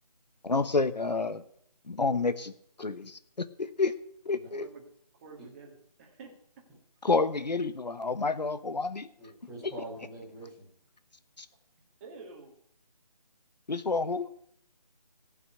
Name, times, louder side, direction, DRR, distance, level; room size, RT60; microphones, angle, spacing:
voice 1, 0.4-1.4 1.9-2.5 2.8-3.9 4.2-4.7 7.0-9.1 9.6-9.7 11.4-11.5 13.7-14.3, left 3 dB, 85° left, 12 dB, 1.2 m, -29 dB
voice 2, 4.5-4.8 5.2-6.3 12.0-12.5, right 4 dB, 20° right, -1 dB, 2.0 m, -48 dB
voice 3, 9.2-10.7, right 1 dB, ahead, -8 dB, 3.3 m, -45 dB
15.0 x 6.1 x 8.3 m, 0.67 s
figure-of-eight pair, 160°, 21 cm